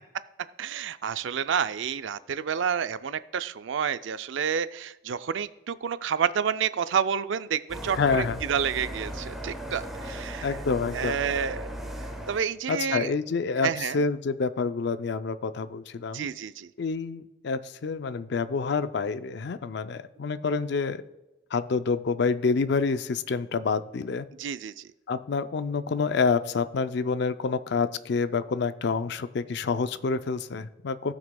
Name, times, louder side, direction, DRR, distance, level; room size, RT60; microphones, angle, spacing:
voice 1, 0.6-10.5 10.9-11.7 12.3-13.1 13.6-14.0 16.1-16.7 24.4-24.9, right 7 dB, 75° right, 14 dB, 0.4 m, -29 dB
sound 1, 7.7-12.5, right 1 dB, ahead, 1.0 m, -37 dB
voice 2, 8.0-8.4 10.4-11.2 12.7-16.3 16.8-21.0 21.5-24.3 25.1-31.1, left 4 dB, 60° left, 12 dB, 0.4 m, -28 dB
17.5 x 6.1 x 2.2 m, 1.0 s
head